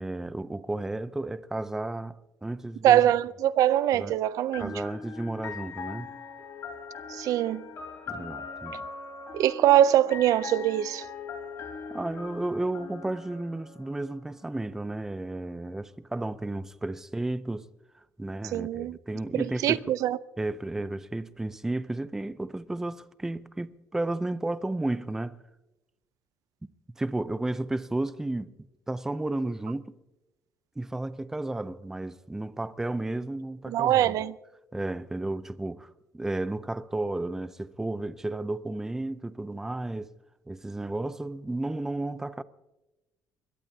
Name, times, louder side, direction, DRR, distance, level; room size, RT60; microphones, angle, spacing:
voice 1, 0.0-3.0 3.9-4.2 4.6-6.1 8.1-8.9 11.9-17.7 18.2-20.0 20.4-25.4 27.0-28.5 28.9-30.0 30.8-34.2 34.7-40.1 40.5-42.4, right 2 dB, 5° right, 0.5 m, -33 dB
voice 2, 2.8-4.7 7.1-7.7 9.3-11.0 18.5-19.0 19.3-20.2 33.7-34.3, right 12 dB, 65° right, 0.5 m, -23 dB
sound 1, 4.5-14.3, left 5 dB, 45° left, 3.7 m, -41 dB
23.5 x 21.0 x 2.8 m
cardioid pair, 150°, 6 cm